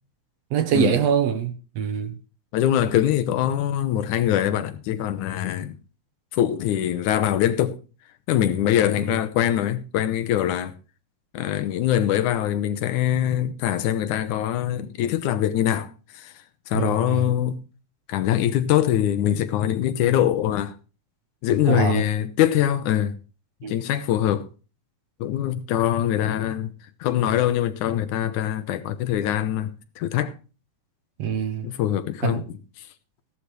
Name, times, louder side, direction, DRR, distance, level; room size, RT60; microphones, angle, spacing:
voice 1, 0.5-2.2 9.0-9.2 16.7-17.3 21.7-22.0 23.6-23.7 31.2-31.7 32.2-32.4, right 7 dB, 65° right, 2.1 m, -24 dB
voice 2, 2.5-5.8 6.3-7.8 8.3-10.7 11.3-15.9 16.1-16.3 16.7-17.6 18.1-20.7 21.4-23.2 23.7-24.5 25.2-26.7 27.0-30.3 31.6-32.4, left 11 dB, 90° left, 2.4 m, -23 dB
16.5 x 11.5 x 3.2 m
omnidirectional pair, 3.4 m